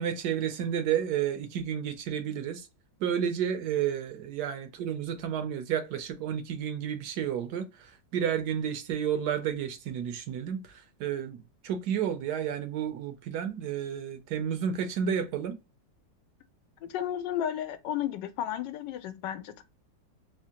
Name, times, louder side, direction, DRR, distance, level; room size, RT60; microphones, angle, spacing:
voice 1, 0.0-2.7 3.0-15.6, right 8 dB, 75° right, 1.1 m, -31 dB
voice 2, 16.8-19.6, left 10 dB, 80° left, 1.2 m, -33 dB
3.5 x 2.8 x 2.8 m
omnidirectional pair, 2.0 m